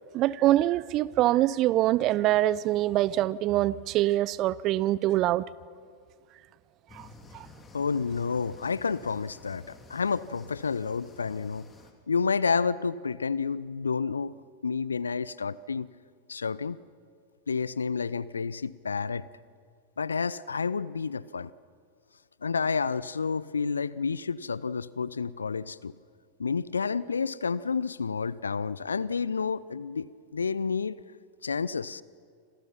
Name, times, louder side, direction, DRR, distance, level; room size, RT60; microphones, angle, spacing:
voice 1, 0.1-5.4 6.9-7.1 7.3-7.5, right 15 dB, 35° right, 0.7 m, -24 dB
sound 1, 6.9-11.9, left 3 dB, 20° left, 2.8 m, -52 dB
voice 2, 7.7-11.7 12.1-14.3 14.6-15.9 16.3-16.8 17.5-19.3 20.0-21.5 22.4-25.9 26.4-30.1 30.3-31.0 31.4-32.0, left 5 dB, 75° left, 0.7 m, -30 dB
29.5 x 27.0 x 5.8 m
figure-of-eight pair, 90°, 0 cm